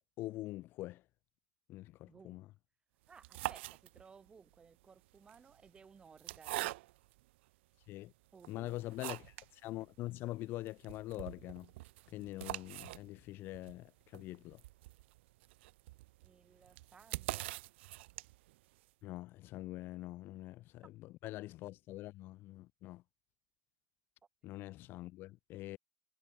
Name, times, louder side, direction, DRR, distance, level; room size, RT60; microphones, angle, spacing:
voice 1, 0.2-1.0 1.7-2.4 7.9-8.1 8.5-11.7 12.1-14.6 19.0-23.0 24.4-25.8, left 17 dB, 35° left, 0.4 m, -44 dB
voice 2, 2.0-2.4 3.1-6.7 8.3-9.3 16.2-17.5, right 5 dB, 15° right, 1.3 m, -60 dB
sound 1, 3.1-4.3 5.1-7.2 7.8-7.9 8.4-9.5 9.9-10.0 10.2-10.3 10.7-18.6, right 19 dB, 85° right, 1.0 m, -44 dB
supercardioid pair, 165°, 6 cm